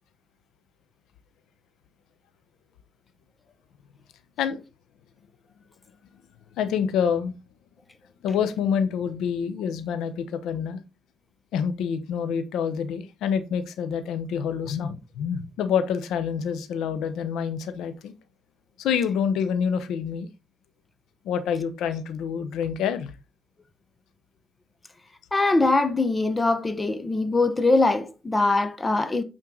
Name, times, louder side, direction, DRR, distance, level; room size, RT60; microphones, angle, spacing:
voice 1, 6.6-7.3 8.2-10.8 11.5-18.2 18.8-20.3 21.2-23.1, left 7 dB, 85° left, 0.9 m, -27 dB
voice 2, 25.3-29.2, left 2 dB, 20° left, 1.1 m, -22 dB
8.8 x 4.6 x 3.9 m
cardioid pair, 90°, 0 cm